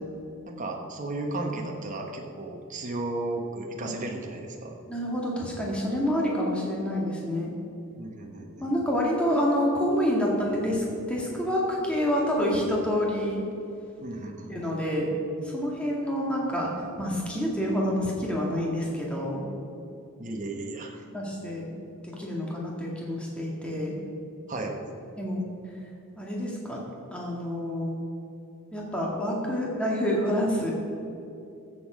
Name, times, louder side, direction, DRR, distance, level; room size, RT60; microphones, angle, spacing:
voice 1, 0.5-4.7 8.0-8.7 14.0-14.7 20.2-21.0 24.5-24.8, right 2 dB, 35° right, 1 dB, 1.2 m, -34 dB
voice 2, 4.9-7.5 8.6-13.4 14.5-15.1 15.4-16.7 17.0-19.4 21.1-21.7 22.0-23.9 25.2-25.4 26.2-26.8 27.1-28.0 28.7-30.7, equal, 5° left, -3 dB, 1.9 m, -27 dB
14.0 x 7.4 x 5.0 m, 2.7 s
head